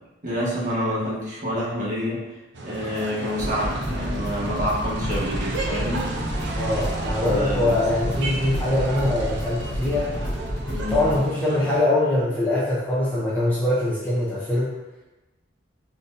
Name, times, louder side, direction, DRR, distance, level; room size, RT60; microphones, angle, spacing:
voice 1, 0.2-2.3 2.6-6.1 7.2-7.7 10.7-11.0, equal, 45° right, -7 dB, 1.1 m, -27 dB
sound 1, 2.5-11.8, right 2 dB, 65° right, 0.6 m, -32 dB
sound 2, 3.0-3.1 3.4-11.2, equal, 75° left, 0.7 m, -30 dB
voice 2, 6.6-10.1 10.9-14.7, left 1 dB, 10° left, -8 dB, 0.5 m, -23 dB
4.0 x 2.6 x 2.5 m, 1.1 s
head